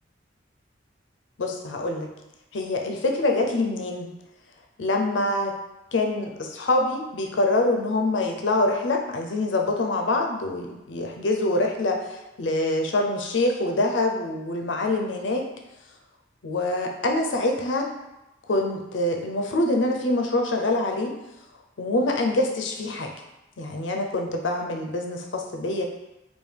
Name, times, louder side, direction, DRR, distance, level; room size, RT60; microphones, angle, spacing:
voice 1, 1.4-2.1 2.5-4.1 4.8-5.5 5.9-15.5 16.4-17.9 18.5-21.1 21.8-23.1 23.6-25.9, left 2 dB, 75° left, 3 dB, 0.6 m, -25 dB
4.4 x 2.7 x 3.3 m, 0.97 s
head